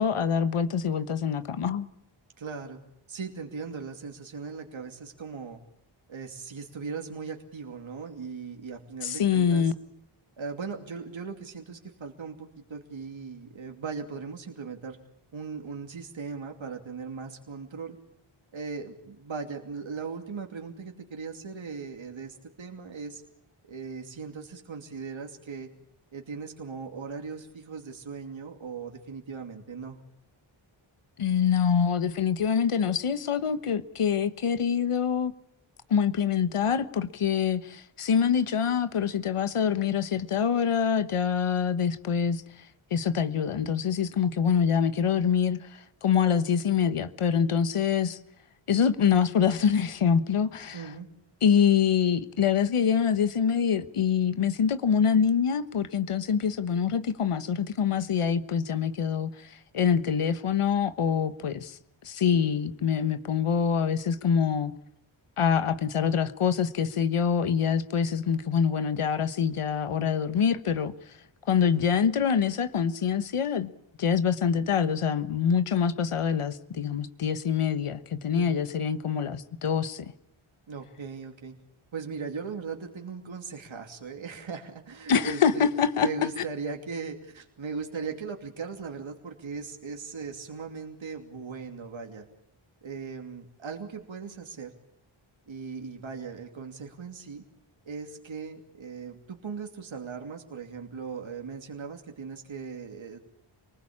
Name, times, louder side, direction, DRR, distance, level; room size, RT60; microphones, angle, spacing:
voice 1, 0.0-1.9 9.0-9.7 31.2-35.3 35.9-42.4 42.9-48.2 48.7-50.8 51.4-61.8 62.0-64.7 65.4-70.9 71.5-73.7 74.0-80.1 85.1-86.1, left 7 dB, 80° left, 1.3 m, -25 dB
voice 2, 2.4-2.8 3.1-5.6 6.1-9.7 10.4-15.0 15.3-18.0 18.5-23.2 23.6-25.7 26.1-30.0 50.7-51.1 71.6-71.9 78.3-78.6 80.7-81.6 81.9-85.7 86.0-92.2 92.8-94.7 95.5-97.4 97.9-103.2, right 5 dB, 65° right, 2.8 m, -38 dB
28.0 x 20.0 x 8.7 m
wide cardioid pair, 105°, 50 cm